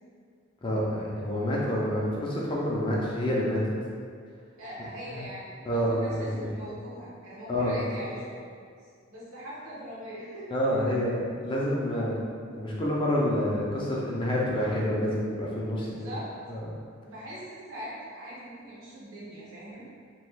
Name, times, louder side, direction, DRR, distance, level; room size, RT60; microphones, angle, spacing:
voice 1, 0.6-3.6 5.1-5.2 5.6-6.4 7.5-8.1 10.5-12.1 12.6-16.1 16.5-16.6, equal, 25° left, -5 dB, 0.4 m, -28 dB
voice 2, 4.6-8.4 9.1-10.8 15.8-16.3 17.0-19.9, equal, 85° right, -8 dB, 1.0 m, -41 dB
3.0 x 2.2 x 3.2 m, 2.2 s
head